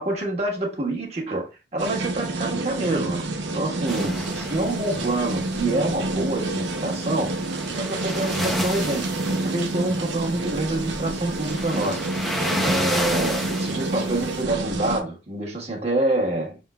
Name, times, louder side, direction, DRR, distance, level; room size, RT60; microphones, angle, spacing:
voice 1, 0.0-7.4 7.7-12.1 12.6-16.6, right 2 dB, 35° right, 1.4 m, -27 dB
sound 1, 1.8-15.0, right 2 dB, 80° right, 0.8 m, -28 dB
sound 2, 3.9-14.4, left 1 dB, ahead, 0.6 m, -32 dB
5.8 x 3.6 x 2.3 m
head